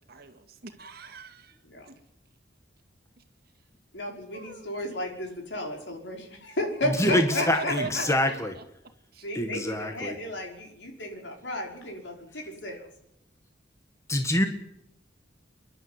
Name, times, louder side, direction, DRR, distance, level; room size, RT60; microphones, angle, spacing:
voice 1, 0.1-1.6 1.9-2.0 4.3-4.7 7.0-8.6 9.1-9.3, right 4 dB, 55° right, 7 dB, 2.3 m, -39 dB
voice 2, 3.9-8.0 9.2-12.9, left 1 dB, 70° left, 2 dB, 5.5 m, -33 dB
voice 3, 6.9-8.5 9.3-10.1 14.1-14.5, left 1 dB, 15° left, 6 dB, 1.6 m, -25 dB
29.5 x 11.5 x 9.7 m, 0.79 s
head